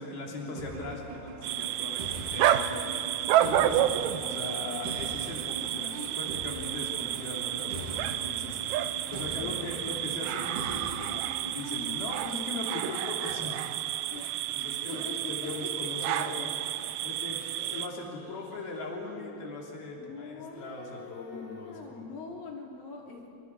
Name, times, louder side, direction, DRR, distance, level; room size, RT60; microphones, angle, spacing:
voice 1, 0.0-3.1 3.4-3.9 4.2-11.2 11.4-13.8 14.5-15.0 15.3-16.5 17.0-17.4 17.7-22.1, left 2 dB, 90° left, -2 dB, 5.2 m, -39 dB
sound 1, 0.6-12.0, right 2 dB, 60° right, 4.0 m, -42 dB
sound 2, 1.4-17.9, right 12 dB, 75° right, 2.1 m, -30 dB
voice 2, 9.3-10.4 14.1-15.1 15.6-15.9 16.2-16.6 17.6-19.4 20.0-23.3, left 4 dB, 70° left, -1 dB, 4.6 m, -45 dB
28.0 x 26.5 x 4.8 m, 2.7 s
omnidirectional pair, 4.2 m